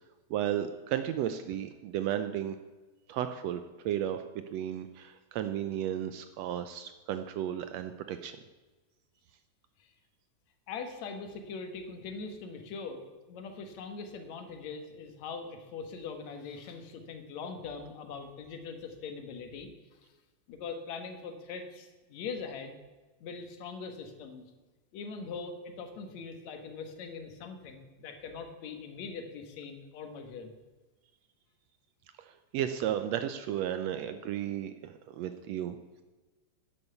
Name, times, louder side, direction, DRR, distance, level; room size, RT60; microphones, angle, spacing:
voice 1, 0.3-2.6 3.1-4.2 4.5-8.4 32.2-35.8, right 10 dB, 75° right, 9 dB, 1.6 m, -34 dB
voice 2, 10.7-19.7 20.5-22.8 23.2-24.5 24.9-30.5, left 5 dB, 70° left, 6 dB, 2.6 m, -42 dB
11.0 x 8.8 x 6.8 m, 1.2 s
omnidirectional pair, 3.3 m